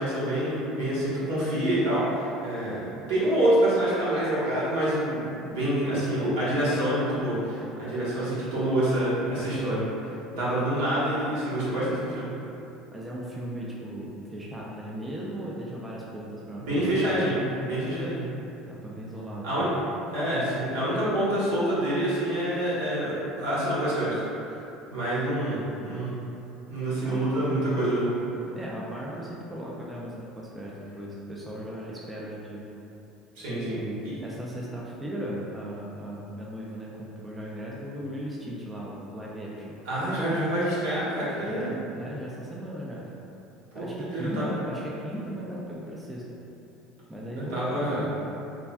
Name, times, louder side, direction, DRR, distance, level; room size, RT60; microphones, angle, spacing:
voice 1, 0.0-12.3 16.7-18.2 19.4-19.7 20.1-24.2 24.9-26.1 26.7-28.1 33.4-33.8 39.8-41.7 43.7-44.5 47.5-48.0, right 1 dB, 85° right, -10 dB, 1.2 m, -27 dB
voice 2, 12.9-17.0 18.7-19.5 27.0-27.6 28.5-32.7 33.5-39.8 41.4-43.1 43.7-46.3 47.1-48.1, equal, 15° right, -4 dB, 0.3 m, -37 dB
3.4 x 2.1 x 2.3 m, 2.9 s
supercardioid pair, 125°, 0 cm